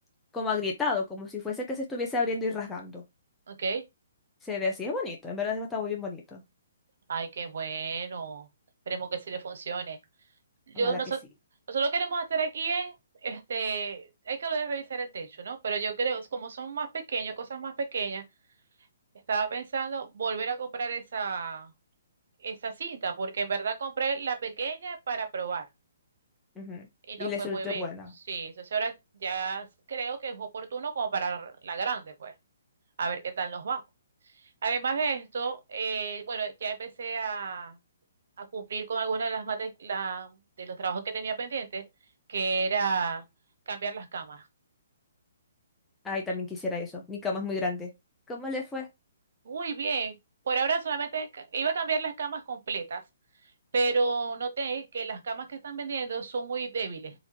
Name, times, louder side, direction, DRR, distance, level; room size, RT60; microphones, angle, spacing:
voice 1, 0.3-3.0 4.4-6.4 10.8-11.0 26.6-26.9 27.2-28.1 46.0-47.9 48.3-48.9, left 4 dB, 10° left, 0.7 m, -32 dB
voice 2, 3.5-3.8 7.1-8.5 8.9-10.0 10.7-11.2 11.7-12.9 13.2-18.2 19.3-21.7 22.4-25.6 27.1-27.8 28.3-28.9 29.2-32.3 33.0-33.8 34.6-37.8 38.4-41.8 42.3-43.2 43.7-44.4 49.4-50.2 50.5-53.0 53.7-57.1, right 5 dB, 60° right, 0.8 m, -31 dB
3.5 x 2.5 x 2.8 m
figure-of-eight pair, 135°, 0 cm